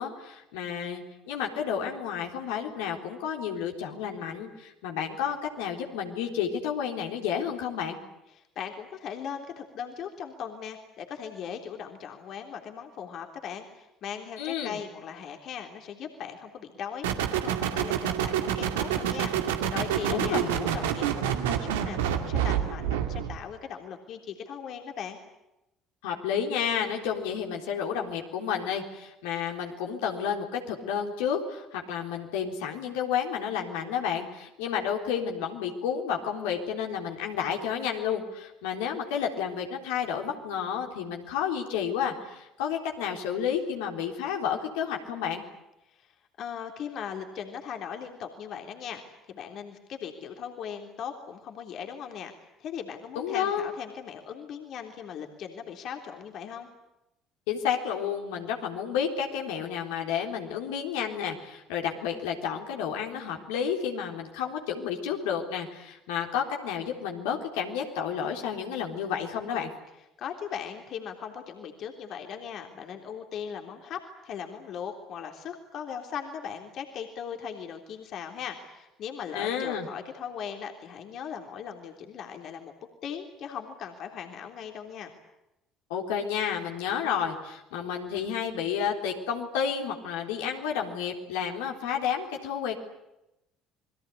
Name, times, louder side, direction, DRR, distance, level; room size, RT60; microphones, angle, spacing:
voice 1, 0.0-8.0 14.4-14.8 20.1-20.5 26.0-45.4 53.2-53.7 57.5-69.7 79.3-79.9 85.9-92.8, left 8 dB, 70° left, 2 dB, 3.7 m, -31 dB
voice 2, 8.3-25.2 45.9-46.1 46.4-52.3 52.6-56.7 70.2-82.7 83.0-85.1, left 7 dB, 55° left, 4 dB, 3.4 m, -39 dB
sound 1, 17.0-23.4, right 9 dB, 75° right, 2.3 m, -28 dB
28.5 x 21.5 x 8.5 m, 0.90 s
hypercardioid pair, 55°, 0 cm